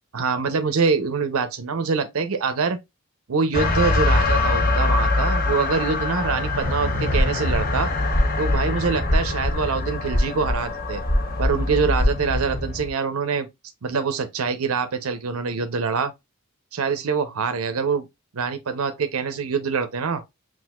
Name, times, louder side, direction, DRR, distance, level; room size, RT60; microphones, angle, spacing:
voice 1, 0.1-2.8 3.3-7.9 8.4-11.0 11.4-13.5 13.8-16.1 16.7-18.1 18.3-20.2, right 5 dB, 85° right, 0.6 m, -24 dB
sound 1, 3.5-12.9, left 2 dB, 40° left, 0.8 m, -24 dB
sound 2, 7.1-7.7 8.0-9.6 10.1-10.7 10.9-11.5 11.9-12.3, equal, 60° left, 1.4 m, -22 dB
6.0 x 2.5 x 2.3 m
head